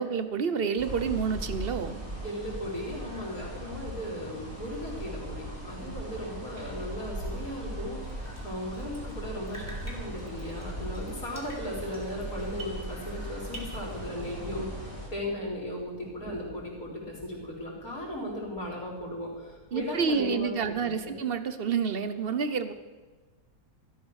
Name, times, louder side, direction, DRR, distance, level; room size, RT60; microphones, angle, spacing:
voice 1, 0.0-2.0 5.8-5.9 14.6-14.7 19.7-22.7, right 6 dB, 45° right, 11 dB, 1.0 m, -29 dB
sound 1, 0.8-15.1, equal, 65° right, 4.4 m, -39 dB
voice 2, 2.2-21.2, equal, 75° left, -2 dB, 4.6 m, -37 dB
Drip, 8.0-9.2 9.5-13.2 13.5-14.5, right 2 dB, 10° left, 3.1 m, -48 dB
sound 2, 13.4-21.0, left 1 dB, 15° right, 2.5 m, -49 dB
14.0 x 12.5 x 6.5 m, 1.3 s
omnidirectional pair, 1.5 m